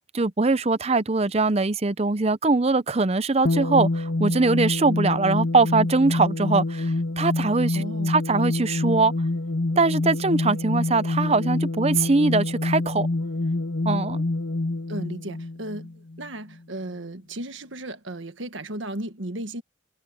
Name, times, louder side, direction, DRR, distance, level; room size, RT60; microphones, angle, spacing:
voice 1, 0.1-9.1 9.8-13.1 13.8-14.2, right 3 dB, 30° right, 0.6 m, -22 dB
sound 1, 3.4-16.3, left 2 dB, 60° left, 1.4 m, -26 dB
voice 2, 7.7-8.2 14.9-19.6, right 1 dB, 75° right, 1.6 m, -35 dB
head